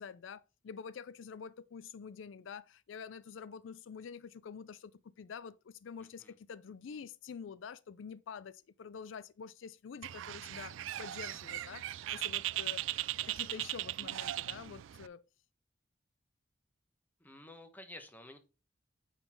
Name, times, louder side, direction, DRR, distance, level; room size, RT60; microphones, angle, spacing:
voice 1, 0.0-15.2, left 6 dB, 80° left, 0.4 m, -47 dB
Bird, 10.0-15.1, right 14 dB, 80° right, 0.3 m, -38 dB
voice 2, 17.2-18.4, left 1 dB, 10° left, 1.1 m, -51 dB
9.0 x 4.0 x 4.4 m
head